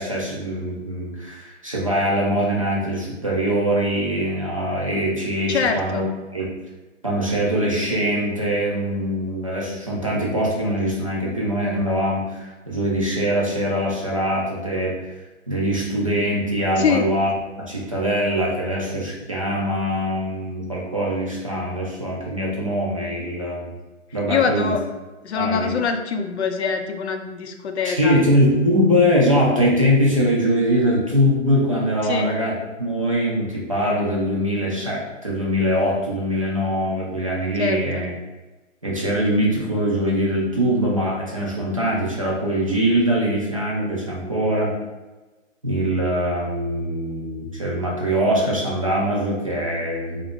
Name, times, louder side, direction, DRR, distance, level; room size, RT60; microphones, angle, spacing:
voice 1, 0.0-6.0 6.3-6.5 7.0-15.0 15.5-17.3 17.6-23.7 24.1-24.7 25.4-25.7 27.8-38.1 38.8-44.7 45.6-50.2, equal, 30° right, -4 dB, 0.4 m, -22 dB
voice 2, 5.5-6.1 16.8-17.1 24.3-24.8 25.2-28.3 32.0-32.3 37.6-38.0, left 6 dB, 60° left, 6 dB, 0.5 m, -24 dB
3.6 x 2.5 x 3.5 m, 1.2 s
hypercardioid pair, 170°, 37 cm